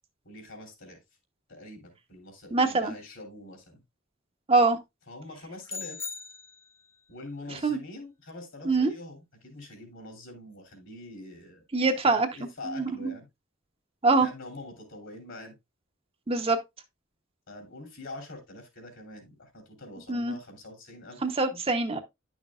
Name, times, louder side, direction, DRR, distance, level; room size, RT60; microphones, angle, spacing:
voice 1, 0.2-1.0 1.5-3.8 5.1-6.1 7.1-11.6 12.0-13.3 14.2-15.5 17.5-21.2, left 2 dB, 65° left, 3.1 m, -44 dB
voice 2, 2.5-2.9 4.5-4.8 7.6-7.8 8.6-8.9 11.7-12.3 12.6-13.1 14.0-14.3 16.3-16.6 20.1-20.3 21.2-22.0, right 3 dB, 30° right, 0.9 m, -24 dB
sound 1, 5.7-7.0, left 5 dB, 15° left, 0.6 m, -39 dB
10.5 x 6.2 x 2.4 m
head